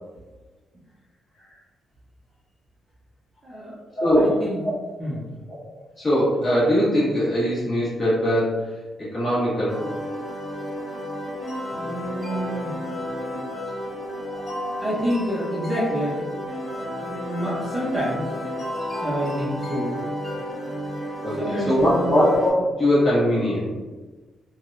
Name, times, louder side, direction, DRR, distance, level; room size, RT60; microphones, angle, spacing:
voice 1, 3.4-3.8 4.2-4.6 5.0-5.2 11.7-12.8 13.7-14.2 14.8-16.3 17.0-18.3 19.0-20.0 21.4-22.1, equal, 15° right, -8 dB, 0.7 m, -28 dB
voice 2, 3.9-4.7 5.5-9.8 12.2-12.4 14.1-14.8 18.6-18.9 21.2-23.7, equal, 25° left, -9 dB, 1.4 m, -22 dB
sound 1, 9.7-22.5, equal, ahead, 1.5 m, -32 dB
3.3 x 2.2 x 2.5 m, 1.3 s
cardioid pair, 150°, 0 cm